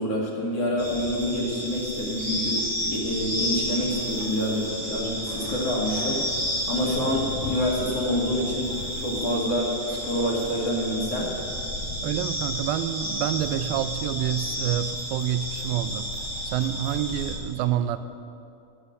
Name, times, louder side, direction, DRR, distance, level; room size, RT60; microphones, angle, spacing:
voice 1, 0.0-11.3, left 1 dB, 50° left, -3 dB, 2.7 m, -27 dB
sound 1, 0.8-17.3, equal, 20° left, 0.7 m, -31 dB
voice 2, 12.0-16.1 16.4-18.0, right 11 dB, 85° right, 12 dB, 2.3 m, -27 dB
11.0 x 11.0 x 6.9 m, 2.5 s
omnidirectional pair, 4.2 m